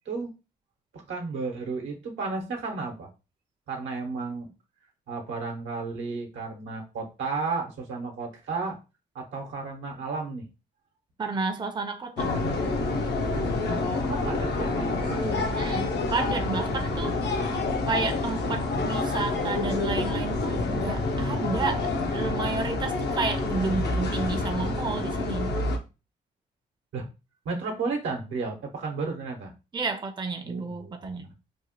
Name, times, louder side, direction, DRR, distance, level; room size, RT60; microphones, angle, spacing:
voice 1, 1.1-3.1 3.7-4.5 5.1-8.8 9.1-10.5 13.7-15.5 17.1-17.4 26.9-27.1 27.4-29.5 30.4-31.3, right 4 dB, 80° right, 0.9 m, -33 dB
voice 2, 11.2-12.3 15.6-17.2 17.9-25.5 29.7-31.3, right 4 dB, 25° right, 0.5 m, -31 dB
sound 1, 12.2-25.8, left 2 dB, 65° left, 0.6 m, -28 dB
3.0 x 2.1 x 2.9 m
supercardioid pair, 50°, 19 cm